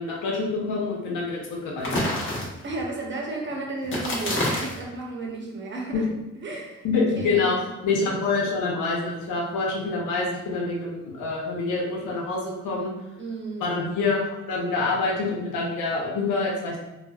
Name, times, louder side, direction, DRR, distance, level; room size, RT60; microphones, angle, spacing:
voice 1, 0.0-2.0 5.9-6.1 6.8-7.6 7.8-12.9 13.6-16.8, left 3 dB, 85° left, -2 dB, 0.8 m, -26 dB
sound 1, 1.8-2.8 3.8-4.8, left 1 dB, 40° left, 0.9 m, -27 dB
voice 2, 2.6-6.0 6.4-7.6 13.2-13.8, right 2 dB, 40° right, -1 dB, 0.8 m, -33 dB
3.2 x 2.1 x 2.3 m, 0.98 s
cardioid pair, 90°, 30 cm